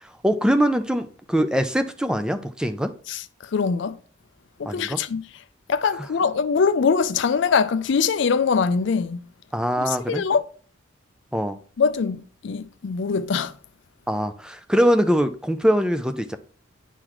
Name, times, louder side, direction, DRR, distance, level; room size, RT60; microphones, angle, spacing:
voice 1, 0.0-2.9 4.6-5.0 9.5-10.2 11.3-11.6 14.1-16.4, equal, 5° right, 0.5 m, -22 dB
voice 2, 3.5-4.0 4.6-5.2 5.7-9.2 9.8-10.4 11.8-13.5, left 5 dB, 60° left, 0.4 m, -22 dB
10.0 x 3.9 x 3.1 m
head